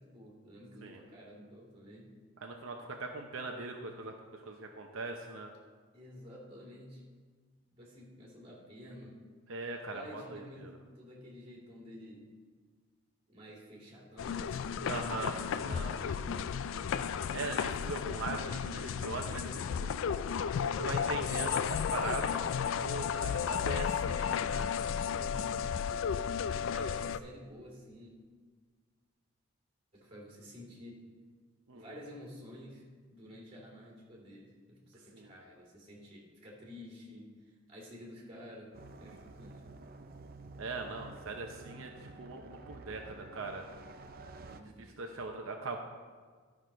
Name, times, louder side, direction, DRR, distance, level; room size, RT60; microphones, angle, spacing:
voice 1, 0.0-2.1 5.9-7.0 7.7-9.1 9.9-12.3 13.3-17.0 25.0-26.3 26.7-28.1 29.9-31.0 31.7-38.7 39.0-39.7 44.4-45.0, left 1 dB, 30° right, -4 dB, 2.8 m, -50 dB
voice 2, 2.4-5.5 9.5-10.7 14.9-15.9 17.3-19.9 20.6-24.7 31.7-31.8 35.1-35.3 40.6-43.7 44.5-45.8, right 3 dB, 75° right, 2 dB, 0.8 m, -41 dB
sound 1, 14.2-27.2, left 7 dB, 70° left, 0.3 m, -33 dB
sound 2, 38.7-44.6, right 3 dB, 45° right, 0.5 m, -50 dB
11.5 x 6.2 x 5.1 m, 1.6 s
head